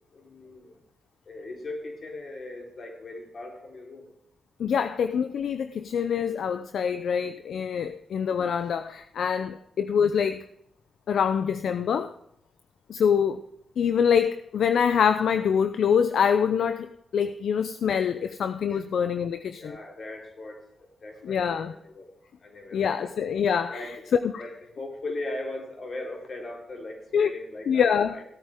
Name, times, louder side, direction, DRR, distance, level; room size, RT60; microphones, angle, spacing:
voice 1, 0.1-0.7 1.3-4.1 18.7-18.8 19.5-20.6 21.0-22.1 22.4-23.1 23.6-24.0 24.4-28.2, left 2 dB, 55° left, 0 dB, 4.1 m, -39 dB
voice 2, 4.6-10.4 11.1-12.1 12.9-13.4 13.8-19.8 21.2-21.7 22.7-24.4 27.1-27.3 27.7-28.2, left 7 dB, 75° left, 10 dB, 0.6 m, -25 dB
17.0 x 9.0 x 3.7 m, 0.78 s
cardioid pair, 70°, 0 cm